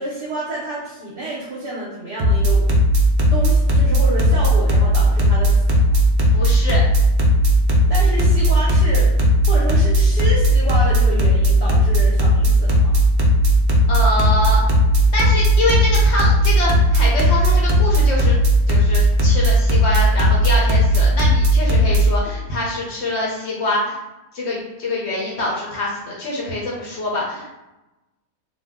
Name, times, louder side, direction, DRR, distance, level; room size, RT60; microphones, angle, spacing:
voice 1, 0.0-2.6 3.3-5.6 7.9-9.1 9.5-13.0, right 1 dB, 55° right, -6 dB, 0.8 m, -29 dB
sound 1, 2.2-22.0, left 1 dB, 90° right, 0.4 m, -16 dB
voice 2, 6.3-6.8 13.9-14.6 15.1-18.4 18.7-24.0 24.3-27.5, left 1 dB, 60° left, -4 dB, 0.8 m, -24 dB
2.5 x 2.1 x 3.5 m, 1.0 s
omnidirectional pair, 1.5 m